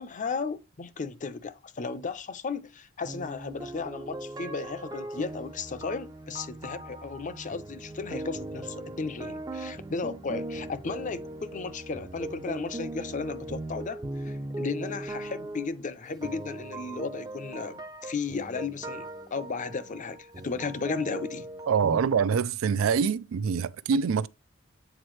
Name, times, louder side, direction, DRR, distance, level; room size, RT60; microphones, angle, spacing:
voice 1, 0.0-21.5, left 4 dB, 40° left, 0.5 m, -35 dB
sound 1, 3.0-22.0, right 1 dB, 20° right, 0.5 m, -39 dB
voice 2, 21.7-24.3, right 6 dB, 85° right, 0.4 m, -25 dB
7.9 x 4.2 x 3.1 m
head